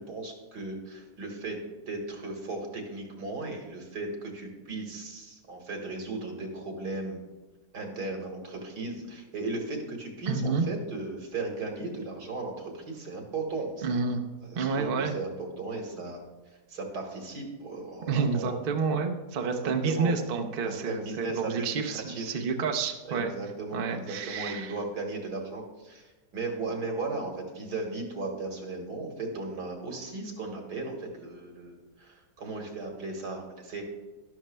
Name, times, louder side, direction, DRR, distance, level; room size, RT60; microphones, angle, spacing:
voice 1, 0.0-7.2 7.7-14.0 14.4-16.2 16.5-18.6 19.6-20.1 20.6-22.4 23.1-33.8, right 3 dB, 75° right, 2 dB, 2.2 m, -36 dB
voice 2, 10.3-10.7 13.8-14.2 14.5-15.1 18.1-23.3 23.7-24.8, right 5 dB, 50° right, 3 dB, 0.7 m, -29 dB
12.0 x 11.5 x 2.2 m, 1.1 s
omnidirectional pair, 1.8 m